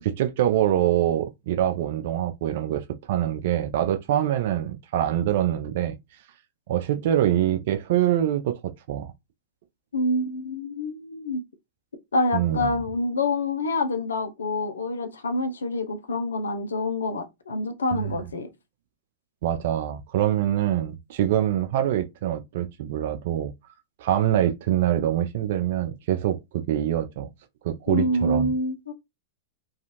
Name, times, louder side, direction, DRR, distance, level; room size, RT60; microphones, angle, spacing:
voice 1, 0.0-6.0 6.7-9.1 12.3-12.7 17.9-18.1 19.4-23.5 24.0-27.3 27.6-28.5, right 11 dB, 60° right, 0.3 m, -24 dB
voice 2, 9.9-11.4 12.1-18.5 27.9-28.9, left 2 dB, 80° left, 0.5 m, -27 dB
2.5 x 2.3 x 2.9 m
hypercardioid pair, 105°, 0 cm